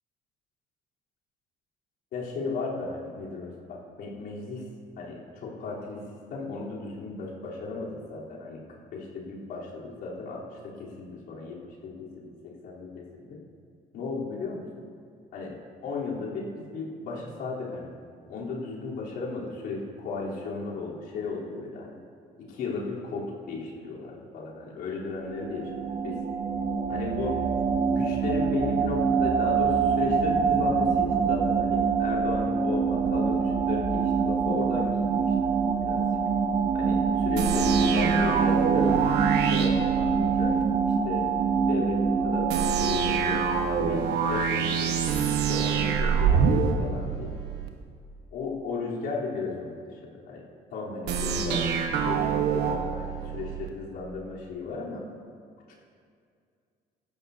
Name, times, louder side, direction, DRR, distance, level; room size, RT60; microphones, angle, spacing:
voice 1, 2.1-4.6 5.0-6.0 6.3-13.4 13.9-14.7 15.3-15.6 15.8-17.9 18.3-22.0 22.4-26.2 26.9-27.4 27.9-36.1 36.7-40.6 40.9-41.3 41.7-43.5 43.9-45.0 45.3-47.4 48.3-50.4 50.7-51.7 52.0-55.0 55.7-55.8, left 3 dB, 75° left, -6 dB, 3.4 m, -35 dB
sound 1, 25.2-44.1, right 6 dB, 40° right, 0.7 m, -25 dB
sound 2, 37.4-40.6 42.5-47.7 51.1-53.7, right 6 dB, 75° right, 1.1 m, -26 dB
16.0 x 12.0 x 2.7 m, 2.2 s
cardioid pair, 110°, 17 cm